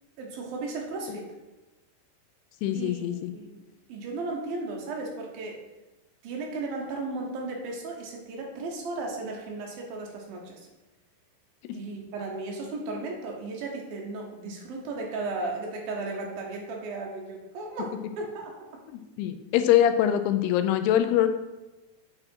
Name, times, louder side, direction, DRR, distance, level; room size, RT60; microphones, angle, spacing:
voice 1, 0.2-1.3 2.7-3.6 3.9-5.6 6.2-10.7 11.7-18.5, right 3 dB, 70° right, 0 dB, 2.7 m, -35 dB
voice 2, 2.6-3.3 19.2-21.3, left 11 dB, 85° left, 8 dB, 2.5 m, -23 dB
8.8 x 4.2 x 4.4 m, 1.1 s
omnidirectional pair, 4.7 m